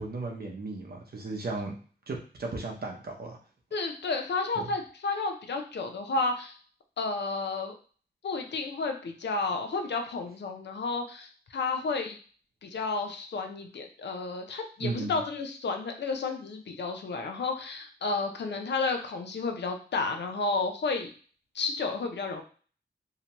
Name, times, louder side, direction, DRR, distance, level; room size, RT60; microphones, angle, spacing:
voice 1, 0.0-1.7 2.1-3.4 4.6-4.7 14.8-15.2, right 3 dB, 55° right, 1 dB, 0.7 m, -35 dB
voice 2, 3.7-6.5 7.0-7.7 8.2-12.2 12.6-21.1 21.5-22.4, left 3 dB, 70° left, 5 dB, 0.5 m, -31 dB
2.8 x 2.1 x 2.9 m, 0.41 s
wide cardioid pair, 75°, 19 cm